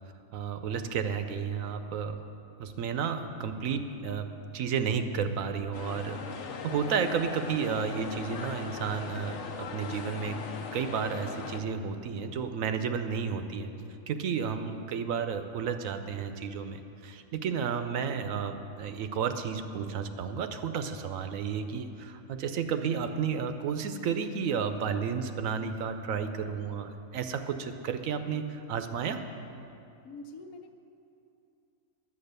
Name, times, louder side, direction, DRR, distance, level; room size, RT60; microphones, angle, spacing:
voice 1, 0.3-2.2 2.6-4.3 4.5-6.2 6.6-10.4 10.7-13.7 14.1-29.2, right 6 dB, 70° right, 8 dB, 1.1 m, -32 dB
sound 1, 5.7-11.6, left 5 dB, 60° left, 1.0 m, -39 dB
voice 2, 30.0-30.7, left 2 dB, 80° left, 6 dB, 1.3 m, -45 dB
11.0 x 8.1 x 6.7 m, 2.7 s
omnidirectional pair, 1.5 m